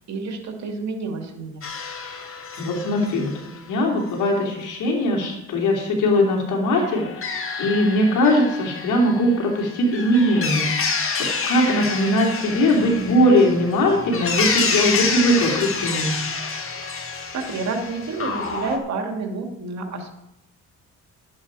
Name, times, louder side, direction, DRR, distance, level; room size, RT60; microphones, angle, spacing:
voice 1, 0.1-1.6 17.0-20.1, right 3 dB, 65° right, 3 dB, 2.6 m, -29 dB
sound 1, 1.6-3.6 6.7-18.8, left 4 dB, 45° left, 2.1 m, -28 dB
voice 2, 2.6-3.3 3.7-7.3 7.6-10.7 11.2-16.2, left 1 dB, 80° left, 0 dB, 3.6 m, -20 dB
11.5 x 9.5 x 5.0 m, 0.83 s
cardioid pair, 90°, 30 cm